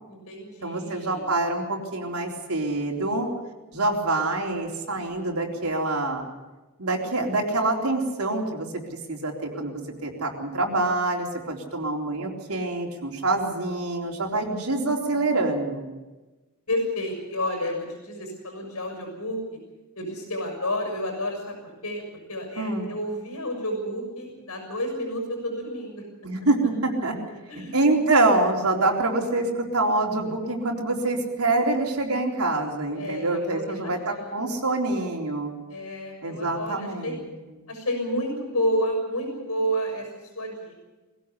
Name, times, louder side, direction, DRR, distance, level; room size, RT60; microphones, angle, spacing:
voice 1, 0.1-1.2 14.2-14.4 16.7-19.6 19.9-21.5 21.8-22.0 22.3-26.0 27.5-27.9 32.9-34.5 35.7-37.2 37.7-40.0 40.3-40.7, equal, 90° left, 3 dB, 6.9 m, -30 dB
voice 2, 0.6-3.3 3.7-6.3 6.8-15.9 22.6-22.9 26.2-27.1 27.7-35.5 36.2-37.2, right 2 dB, 85° right, 0 dB, 4.0 m, -26 dB
22.0 x 16.5 x 8.4 m, 1.1 s
head